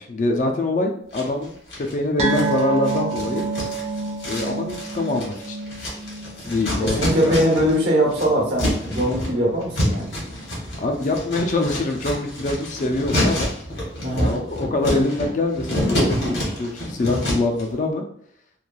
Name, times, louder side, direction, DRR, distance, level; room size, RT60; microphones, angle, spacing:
voice 1, 0.0-3.5 4.2-5.6 6.5-7.3 10.8-13.5 14.2-18.0, left 2 dB, 40° left, 3 dB, 0.3 m, -24 dB
sound 1, 1.1-1.9 2.3-7.8 8.0-17.6, equal, 75° left, 1.1 m, -27 dB
sound 2, 2.2-9.0 9.3-9.5 9.9-10.0, right 4 dB, 35° right, 0.3 m, -29 dB
voice 2, 6.8-10.1 14.0-14.3, equal, 65° right, -3 dB, 1.0 m, -21 dB
3.1 x 2.2 x 2.3 m, 0.64 s
head